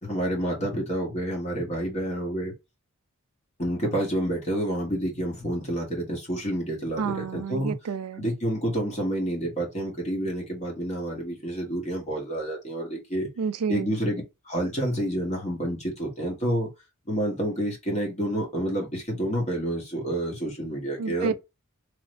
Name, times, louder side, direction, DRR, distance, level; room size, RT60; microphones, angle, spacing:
voice 1, 0.0-2.5 3.6-7.7 8.2-13.3 13.7-16.7 17.1-21.3, right 1 dB, 30° left, 1.9 m, -29 dB
voice 2, 7.0-8.3 13.4-13.9 21.0-21.3, right 5 dB, 80° right, 0.4 m, -29 dB
3.5 x 3.4 x 3.3 m
head